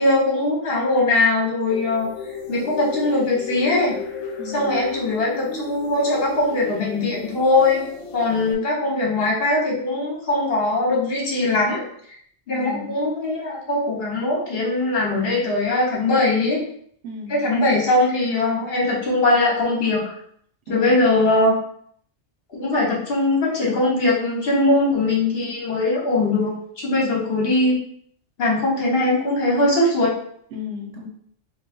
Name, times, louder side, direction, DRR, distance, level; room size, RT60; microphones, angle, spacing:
voice 1, 0.0-2.1 2.5-4.0 4.5-7.8 8.1-11.9 12.5-16.6 17.3-20.1 20.7-21.6 22.5-27.8 28.4-30.2, left 2 dB, 55° left, -3 dB, 1.2 m, -21 dB
sound 1, 1.7-8.5, left 4 dB, 75° left, 0.9 m, -35 dB
voice 2, 4.4-4.8 12.5-12.9 17.0-17.4 20.7-21.1 26.9-27.3 30.5-31.1, left 4 dB, 75° right, 1 dB, 1.0 m, -34 dB
3.0 x 2.4 x 4.2 m, 0.64 s
omnidirectional pair, 1.3 m